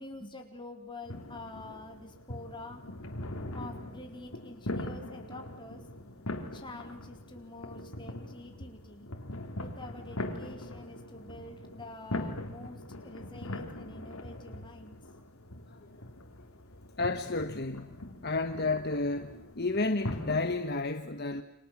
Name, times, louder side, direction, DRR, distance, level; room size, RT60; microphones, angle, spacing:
voice 1, 0.0-2.8 3.5-5.8 6.4-9.1 9.6-15.0, left 2 dB, 20° left, 4.1 m, -47 dB
sound 1, 1.0-20.6, left 1 dB, 75° left, 3.6 m, -41 dB
voice 2, 17.0-21.4, left 3 dB, 50° left, 1.3 m, -31 dB
30.0 x 27.0 x 7.4 m
head